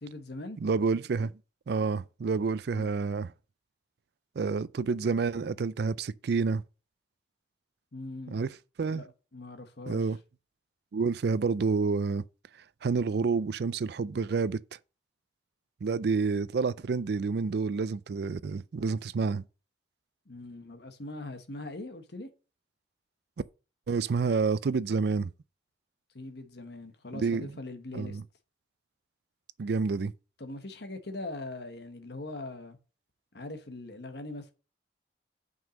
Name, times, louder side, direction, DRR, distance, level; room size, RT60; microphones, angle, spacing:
voice 1, 0.0-0.6 2.7-2.9 7.9-8.4 8.9-9.1 9.3-10.0 20.3-22.3 26.1-28.2 30.4-32.8 33.3-34.5, left 2 dB, 55° left, 1.2 m, -41 dB
voice 2, 0.6-1.3 1.7-3.3 4.4-6.6 8.3-8.5 8.8-9.0 9.9-10.2 10.9-12.2 12.8-14.6 15.8-19.4 23.9-25.3 27.2-27.5 27.9-28.2 29.6-30.1, right 4 dB, 55° right, 0.4 m, -28 dB
6.1 x 5.4 x 6.3 m
head